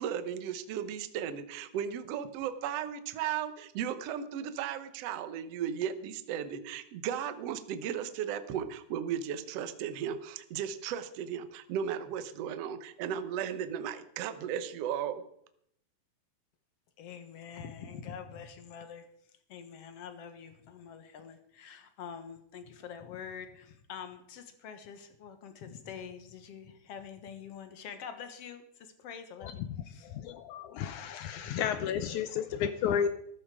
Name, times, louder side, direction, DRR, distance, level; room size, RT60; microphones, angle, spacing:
voice 1, 0.0-15.2, right 9 dB, 75° right, 11 dB, 1.4 m, -35 dB
voice 2, 17.0-19.0 19.5-30.2 31.4-31.7, left 7 dB, 55° left, 9 dB, 1.9 m, -46 dB
voice 3, 30.1-33.1, left 8 dB, 80° left, 11 dB, 1.7 m, -32 dB
14.0 x 13.5 x 4.9 m, 0.71 s
omnidirectional pair, 4.2 m